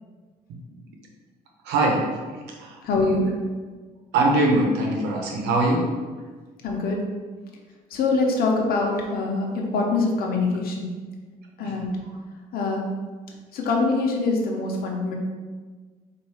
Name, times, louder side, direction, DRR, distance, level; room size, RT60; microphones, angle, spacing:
voice 1, 1.6-2.0 2.5-2.8 4.1-5.9 11.6-11.7, right 2 dB, 80° right, 0 dB, 1.0 m, -22 dB
voice 2, 2.8-3.3 6.6-7.0 7.9-10.9 11.6-12.0 12.5-12.9 13.5-15.2, left 3 dB, 60° left, 0 dB, 0.9 m, -24 dB
4.1 x 2.7 x 4.8 m, 1.4 s
cardioid pair, 110°, 17 cm